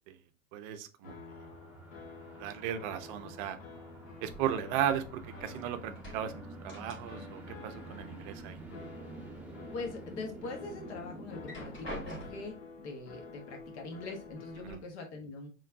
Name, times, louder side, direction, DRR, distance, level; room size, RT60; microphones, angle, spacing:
voice 1, 0.5-1.1 2.4-3.6 4.2-6.3 6.6-8.6 14.6-14.8, right 10 dB, 40° right, 10 dB, 0.6 m, -35 dB
sound 1, 1.0-14.8, left 4 dB, 75° left, 1.0 m, -50 dB
sound 2, 1.3-12.5, right 2 dB, 5° right, 0.9 m, -49 dB
sound 3, 4.3-5.5 5.8-7.4 7.7-8.7 9.1-9.9 10.4-10.5 11.3-12.7 13.6-13.7 14.1-14.7, equal, 30° left, 2.0 m, -47 dB
voice 2, 9.7-15.5, left 3 dB, 55° left, 3 dB, 1.5 m, -42 dB
4.4 x 3.1 x 3.5 m, 0.34 s
figure-of-eight pair, 95°, 40 cm